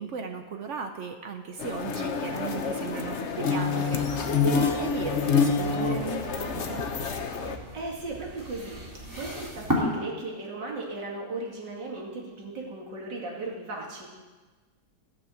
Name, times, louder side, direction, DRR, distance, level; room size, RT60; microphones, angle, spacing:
voice 1, 0.0-6.8, right 5 dB, 55° right, 6 dB, 0.8 m, -36 dB
sound 1, 1.6-7.6, left 5 dB, 50° left, 1.0 m, -27 dB
sound 2, 3.9-9.7, right 1 dB, 10° right, 2.4 m, -38 dB
voice 2, 7.4-14.1, right 2 dB, 80° right, -3 dB, 3.0 m, -37 dB
15.0 x 6.1 x 7.7 m, 1.3 s
omnidirectional pair, 1.9 m